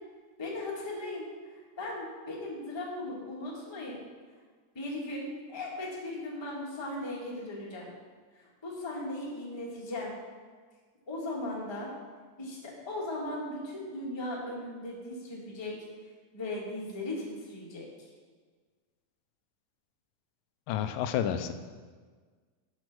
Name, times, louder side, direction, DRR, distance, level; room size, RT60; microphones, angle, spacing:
voice 1, 0.4-4.0 4.7-7.9 8.3-10.1 11.1-11.9 12.4-15.7 16.3-18.1, left 1 dB, 15° left, -4 dB, 0.9 m, -38 dB
voice 2, 20.7-21.5, left 9 dB, 90° left, 10 dB, 2.3 m, -30 dB
7.8 x 6.3 x 6.1 m, 1.5 s
omnidirectional pair, 3.9 m